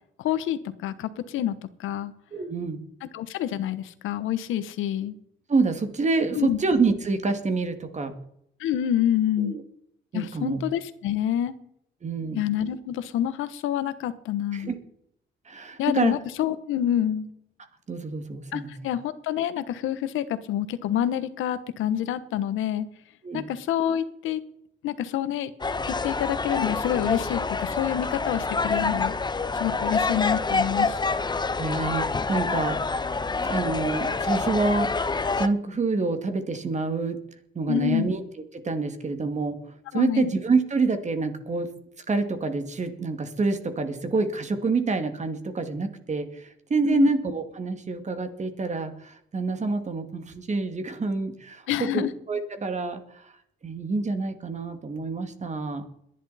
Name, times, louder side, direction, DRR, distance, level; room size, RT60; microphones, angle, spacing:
voice 1, 0.2-2.1 3.1-5.1 6.3-6.6 8.6-9.6 10.1-11.6 12.3-14.7 15.8-17.3 18.5-22.9 23.3-24.4 24.8-25.5 25.9-29.1 29.6-31.0 37.7-38.1 39.9-40.3 46.8-47.1 51.7-52.1, left 10 dB, 85° left, 13 dB, 1.1 m, -27 dB
voice 2, 2.3-2.8 5.5-8.1 9.4-9.6 10.1-10.6 12.0-12.4 14.5-14.8 15.5-16.1 17.9-18.7 23.2-23.5 31.6-33.2 33.4-34.9 35.4-37.2 37.5-38.2 38.6-39.6 39.9-41.7 42.1-52.0 52.3-53.3 53.6-55.8, right 3 dB, 35° right, 8 dB, 2.2 m, -27 dB
sound 1, 25.6-35.5, left 4 dB, 20° left, 0.9 m, -27 dB
21.5 x 11.0 x 4.2 m, 0.74 s
cardioid pair, 90°, 20 cm